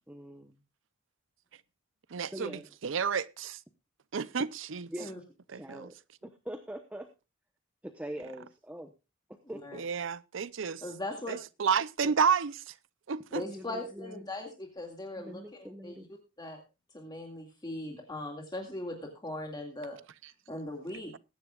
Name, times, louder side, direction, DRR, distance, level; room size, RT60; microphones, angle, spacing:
voice 1, 0.1-0.6 2.3-2.7 4.9-5.1 5.5-5.9 6.2-7.1 7.8-8.9 9.3-9.9 13.4-14.3 15.2-16.1, equal, 5° right, 0.9 m, -43 dB
voice 2, 2.1-2.5 2.8-3.6 4.1-4.9 5.5-5.9 9.7-10.8 11.3-12.7 13.1-13.4, right 6 dB, 70° right, 0.5 m, -30 dB
voice 3, 10.8-11.4 12.0-12.1 13.3-16.0 16.4-16.6 16.9-20.0 20.5-21.1, left 1 dB, 20° left, 2.1 m, -39 dB
21.5 x 10.0 x 2.4 m
head